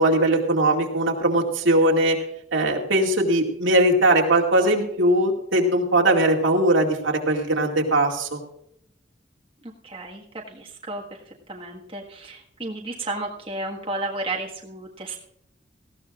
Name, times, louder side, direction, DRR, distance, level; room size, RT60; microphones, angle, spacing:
voice 1, 0.0-2.2 2.5-8.4, right 1 dB, 90° right, 0 dB, 2.3 m, -20 dB
voice 2, 9.8-11.0 11.5-15.2, right 2 dB, 30° right, -2 dB, 1.6 m, -33 dB
18.5 x 15.0 x 2.5 m, 0.75 s
head